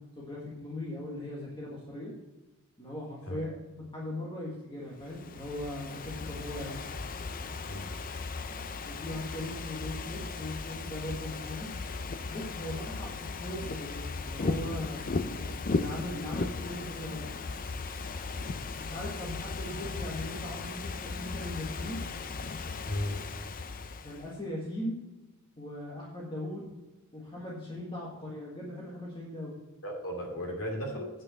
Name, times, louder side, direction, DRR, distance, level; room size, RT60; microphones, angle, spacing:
voice 1, 0.0-2.1 2.8-6.8 8.9-11.7 12.3-15.0 15.7-17.3 18.9-22.0 24.0-25.0 25.6-26.7 27.1-29.5, left 1 dB, 20° left, -5 dB, 1.7 m, -39 dB
Ocean / Fireworks, 5.0-24.3, left 3 dB, 40° left, 0.6 m, -37 dB
voice 2, 22.9-23.2 29.8-31.1, equal, 65° left, 1 dB, 2.6 m, -35 dB
9.0 x 6.0 x 6.4 m, 1.1 s
head